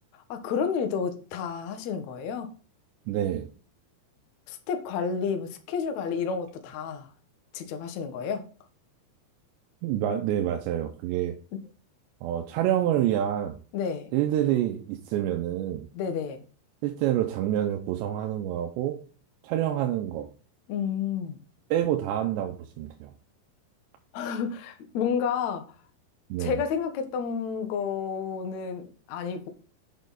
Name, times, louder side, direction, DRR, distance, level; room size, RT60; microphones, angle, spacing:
voice 1, 0.3-2.5 4.5-7.1 7.5-8.4 11.5-11.6 13.7-14.1 15.9-16.4 20.7-21.4 24.1-25.7 26.4-29.5, left 6 dB, 80° left, 1.6 m, -30 dB
voice 2, 3.1-3.5 9.8-11.4 12.2-13.6 14.1-15.9 16.8-19.0 19.4-20.3 21.7-23.1 26.3-26.6, right 11 dB, 80° right, 3.0 m, -27 dB
8.9 x 6.2 x 4.0 m
omnidirectional pair, 5.2 m